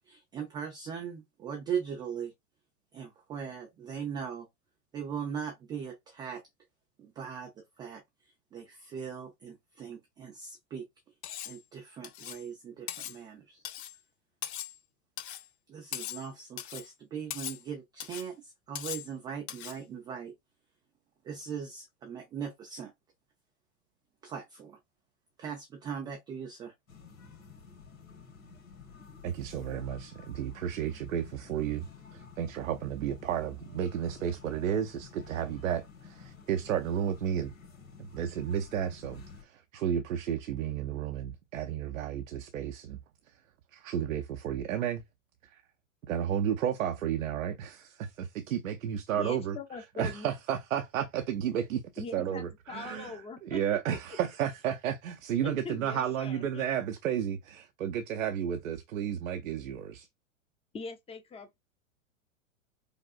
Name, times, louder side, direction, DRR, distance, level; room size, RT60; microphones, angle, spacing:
voice 1, 0.1-2.3 2.9-4.5 4.9-6.4 7.0-7.5 7.8-8.0 8.5-10.8 11.5-13.6 15.7-20.3 21.2-22.9 24.2-24.8 25.4-26.7, right 7 dB, 10° right, 0.3 m, -39 dB
Cutlery silverware, 11.2-11.6 12.0-12.4 12.9-13.2 13.6-14.0 14.4-14.8 15.2-15.5 15.9-16.3 16.6-16.9 17.3-17.6 18.0-18.3 18.8-19.1 19.5-19.8, left 11 dB, 55° left, 0.7 m, -39 dB
sound 1, 26.9-39.4, left 5 dB, 80° left, 1.7 m, -51 dB
voice 2, 29.2-31.9 32.1-37.5 38.1-43.0 43.3-43.4 43.7-45.0 45.4-45.6 46.1-60.1, right 9 dB, 70° right, 0.7 m, -32 dB
voice 3, 49.1-50.3 52.0-53.6 55.4-56.6 60.7-61.6, left 4 dB, 15° left, 0.8 m, -42 dB
5.0 x 2.4 x 2.4 m
hypercardioid pair, 105°, 41 cm